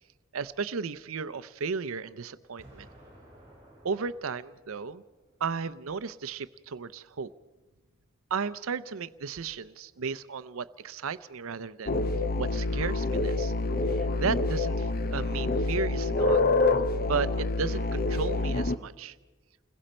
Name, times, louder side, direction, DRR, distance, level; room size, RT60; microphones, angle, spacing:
voice 1, 0.3-2.9 3.8-5.0 5.4-7.3 8.3-12.0 12.4-13.5 14.0-16.4 17.0-19.1, right 5 dB, 75° right, 15 dB, 0.6 m, -34 dB
Explosion, 2.6-5.6, equal, 15° right, 7.5 m, -55 dB
sound 1, 11.9-18.8, left 2 dB, 45° left, 0.6 m, -27 dB
29.5 x 21.5 x 4.3 m, 1.2 s
head